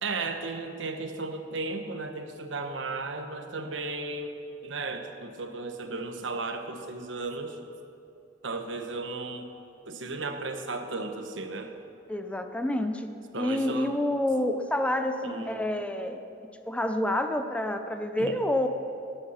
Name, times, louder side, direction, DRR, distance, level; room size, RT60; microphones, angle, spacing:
voice 1, 0.0-4.4 4.6-7.6 8.4-9.5 9.9-11.7 13.3-13.9 15.2-15.6 18.2-18.4, right 3 dB, 85° right, 6 dB, 1.1 m, -35 dB
voice 2, 12.1-16.2 16.7-18.7, left 1 dB, 5° left, 7 dB, 0.6 m, -28 dB
16.0 x 9.2 x 5.7 m, 2.7 s
head